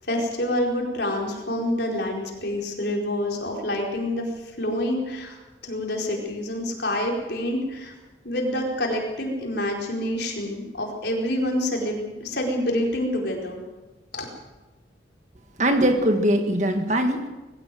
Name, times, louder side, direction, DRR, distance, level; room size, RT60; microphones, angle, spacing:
voice 1, 0.1-7.9 8.2-13.6 14.1-14.3, left 1 dB, 60° left, 0 dB, 4.6 m, -27 dB
voice 2, 15.6-17.3, right 1 dB, 40° right, 6 dB, 1.6 m, -21 dB
21.0 x 16.5 x 7.7 m, 1.1 s
head